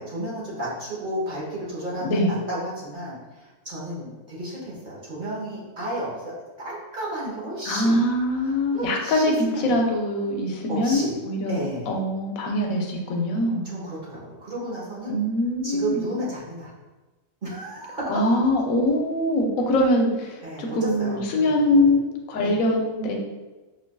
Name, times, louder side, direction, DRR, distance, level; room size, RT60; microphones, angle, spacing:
voice 1, 0.0-8.0 8.4-9.8 10.7-11.1 11.5-11.9 13.6-15.1 15.6-16.7 17.4-18.3 20.4-21.8 22.4-22.6, right 1 dB, 40° right, -6 dB, 1.0 m, -32 dB
voice 2, 2.0-2.4 7.6-13.6 15.1-16.1 18.1-23.2, left 1 dB, 80° left, 1 dB, 1.0 m, -23 dB
4.9 x 2.4 x 2.2 m, 1.2 s
omnidirectional pair, 1.4 m